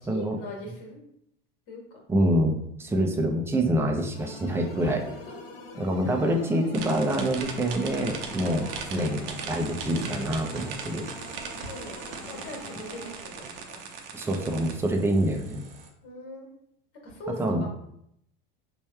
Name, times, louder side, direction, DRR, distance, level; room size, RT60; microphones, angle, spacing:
voice 1, 0.0-1.0 1.7-2.0 4.8-5.4 6.0-6.5 11.6-13.8 16.0-16.5 17.0-17.7, left 1 dB, 55° left, -1 dB, 1.4 m, -40 dB
voice 2, 2.1-5.0 5.8-11.1 14.1-15.6 17.4-17.6, right 1 dB, 10° right, 2 dB, 0.5 m, -26 dB
sound 1, 4.1-13.1, left 2 dB, 75° left, 1.0 m, -44 dB
sound 2, 6.7-15.9, right 5 dB, 70° right, 0.7 m, -39 dB
3.2 x 2.3 x 4.2 m, 0.76 s
hypercardioid pair, 100°, 29 cm